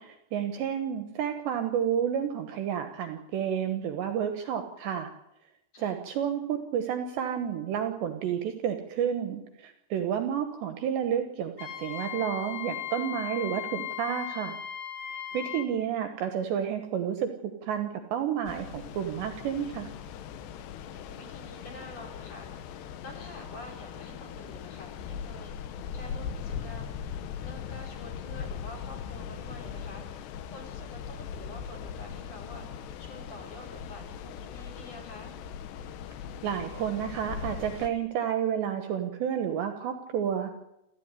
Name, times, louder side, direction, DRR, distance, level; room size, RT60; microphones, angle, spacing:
voice 1, 0.0-5.1 5.8-14.6 15.3-19.9 36.4-40.5, right 9 dB, 70° right, 7 dB, 3.0 m, -30 dB
voice 2, 0.5-0.8 5.7-6.0 15.3-15.8 20.8-30.0 30.5-35.3, left 1 dB, 30° left, 2 dB, 5.1 m, -48 dB
Wind instrument woodwind instrument, 11.6-15.7, left 11 dB, 50° left, 3.4 m, -37 dB
sound 1, 18.5-37.9, left 7 dB, 70° left, 2.9 m, -40 dB
28.5 x 13.5 x 9.7 m, 0.89 s
omnidirectional pair, 6.0 m